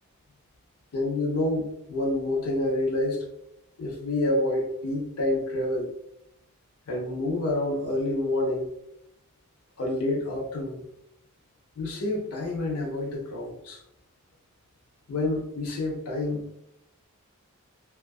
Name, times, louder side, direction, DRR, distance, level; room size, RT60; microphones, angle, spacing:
voice 1, 0.9-3.2 3.8-5.9 6.9-8.7 9.8-10.8 11.8-13.8 15.1-16.5, left 2 dB, 75° left, -2 dB, 0.6 m, -28 dB
2.7 x 2.4 x 2.2 m, 0.79 s
head